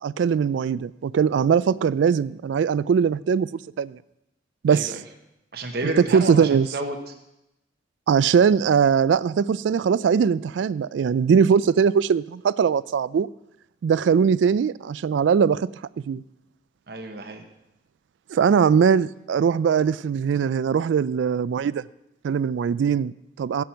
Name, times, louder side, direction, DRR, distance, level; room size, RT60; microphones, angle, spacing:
voice 1, 0.0-4.0 4.6-4.9 6.0-6.7 8.1-13.3 13.8-15.7 16.1-16.2 18.3-21.8 22.2-23.6, right 6 dB, 75° right, 0.3 m, -21 dB
voice 2, 4.7-5.0 5.5-7.1 16.9-17.4, right 2 dB, 55° right, 1.1 m, -31 dB
16.5 x 6.0 x 5.7 m
head